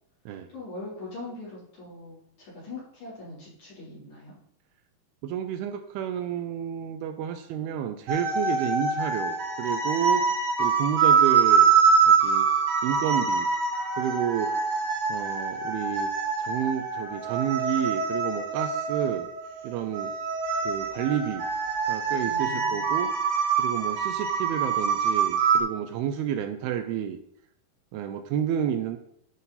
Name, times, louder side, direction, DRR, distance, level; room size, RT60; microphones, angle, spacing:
voice 1, 0.5-4.3 22.2-22.8, left 2 dB, 50° left, -7 dB, 4.8 m, -41 dB
voice 2, 5.2-10.3 10.6-11.7 12.1-12.5 12.8-13.5 14.0-14.5 15.1-16.1 16.4-19.3 19.6-20.1 20.7-21.4 21.9-23.1 23.6-27.2 27.9-29.0, right 9 dB, 80° right, 8 dB, 2.4 m, -30 dB
sound 1, 8.1-25.6, right 6 dB, 60° right, 2.6 m, -24 dB
11.5 x 5.6 x 4.1 m, 0.72 s
omnidirectional pair, 4.7 m